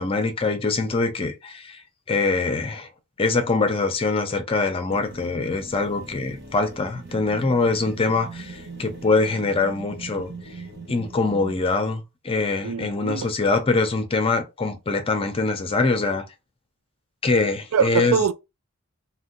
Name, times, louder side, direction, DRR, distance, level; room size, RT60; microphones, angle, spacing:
voice 1, 0.0-1.8 2.1-2.9 3.2-10.3 10.9-16.2 17.2-18.2, left 3 dB, 25° left, 0.6 m, -23 dB
sound 1, 4.9-11.7, right 3 dB, 50° right, 1.0 m, -41 dB
voice 2, 12.6-13.3 17.7-18.3, right 6 dB, 90° right, 0.4 m, -23 dB
2.6 x 2.1 x 3.8 m
head